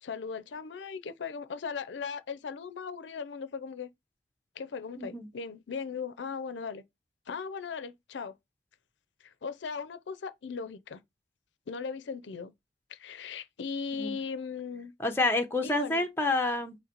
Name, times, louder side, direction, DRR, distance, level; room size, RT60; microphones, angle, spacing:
voice 1, 0.0-3.9 4.6-6.8 7.3-8.3 9.2-11.0 11.7-12.5 12.9-14.9 15.6-16.1, left 5 dB, 75° left, 0.5 m, -38 dB
voice 2, 5.0-5.3 13.9-14.2 15.0-16.8, left 2 dB, 10° left, 0.6 m, -28 dB
4.0 x 3.1 x 4.3 m
head